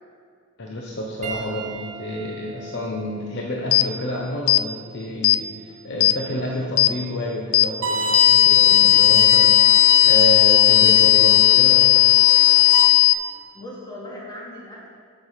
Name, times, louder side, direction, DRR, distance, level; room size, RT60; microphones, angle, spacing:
voice 1, 0.6-12.1, equal, 55° left, -2 dB, 1.1 m, -29 dB
Piano, 1.2-5.9 6.8-7.0 9.0-9.1, right 6 dB, 35° right, 1.4 m, -41 dB
sound 1, 3.7-3.9 4.5-4.6 5.2-5.4 6.0-6.2 6.8-6.9 7.5-7.7 8.1-13.1, left 17 dB, 80° left, 0.4 m, -15 dB
Bowed string instrument, 7.8-12.8, right 3 dB, 60° right, 1.9 m, -26 dB
voice 2, 13.2-14.9, left 1 dB, 20° left, -5 dB, 2.6 m, -39 dB
14.5 x 6.3 x 4.9 m, 2.2 s
head